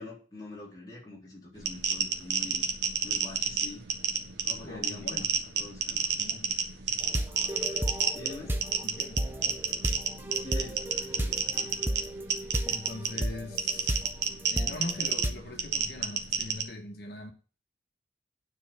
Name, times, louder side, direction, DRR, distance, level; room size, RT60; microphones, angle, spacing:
voice 1, 0.0-2.7 3.0-3.9 4.5-6.1 8.1-8.6 10.4-11.7, left 2 dB, 20° left, 3.8 m, -45 dB
sound 1, 1.6-16.6, right 6 dB, 80° right, 1.5 m, -31 dB
voice 2, 4.6-5.3 6.2-6.5 8.4-9.3 12.6-13.9 14.5-17.3, left 1 dB, 60° left, 1.8 m, -41 dB
sound 2, 7.0-15.3, right 1 dB, 10° right, 0.7 m, -34 dB
9.2 x 5.0 x 7.5 m
head